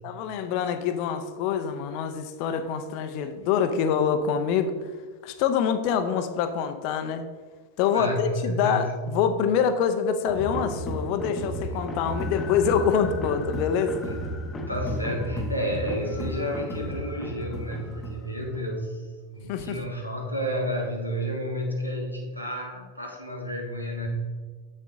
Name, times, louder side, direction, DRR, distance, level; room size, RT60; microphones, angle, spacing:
voice 1, 0.0-4.7 5.2-7.2 7.8-14.0 19.5-19.8, left 7 dB, 45° left, 9 dB, 0.6 m, -25 dB
voice 2, 7.9-9.1 14.0-14.1 14.7-19.0 19.3-24.1, equal, 90° right, 0 dB, 1.4 m, -31 dB
sound 1, 10.3-18.7, equal, 20° left, 0.9 m, -33 dB
7.3 x 6.6 x 3.6 m, 1.5 s
figure-of-eight pair, 90°, 0 cm